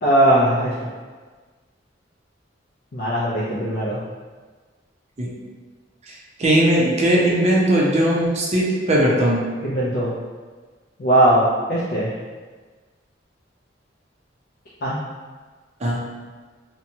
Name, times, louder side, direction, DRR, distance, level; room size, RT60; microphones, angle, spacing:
voice 1, 0.0-0.7 2.9-4.0 9.6-10.1 11.0-12.1 14.8-15.0, right 1 dB, 50° left, -8 dB, 0.4 m, -19 dB
voice 2, 6.4-9.4 15.8-16.0, right 1 dB, 35° right, -3 dB, 0.5 m, -18 dB
2.7 x 2.2 x 2.7 m, 1.4 s
head